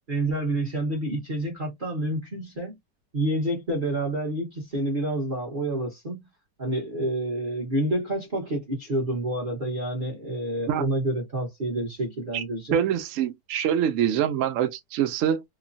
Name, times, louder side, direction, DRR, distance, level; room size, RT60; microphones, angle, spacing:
voice 1, 0.1-2.8 3.1-6.2 6.6-12.8, right 1 dB, 35° right, 1.0 m, -28 dB
voice 2, 12.7-15.4, right 9 dB, 75° right, 0.7 m, -25 dB
3.0 x 2.2 x 2.5 m
omnidirectional pair, 1.8 m